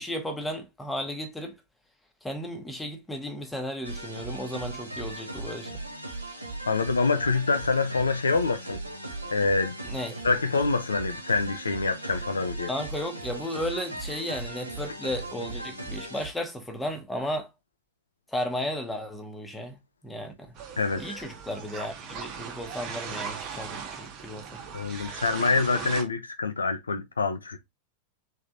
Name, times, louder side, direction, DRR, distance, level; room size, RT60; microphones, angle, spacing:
voice 1, 0.0-1.5 2.2-5.7 9.8-10.2 12.7-17.5 18.3-20.6 21.0-24.6, left 1 dB, 5° left, 1.1 m, -34 dB
sound 1, 3.8-16.3, right 2 dB, 85° right, 0.9 m, -38 dB
voice 2, 6.7-8.8 9.3-9.8 10.2-12.7 20.8-21.2 24.7-27.6, left 4 dB, 75° left, 0.6 m, -26 dB
sound 2, 20.6-26.0, right 6 dB, 40° right, 1.1 m, -39 dB
3.5 x 3.5 x 2.8 m
figure-of-eight pair, 90°, 0 cm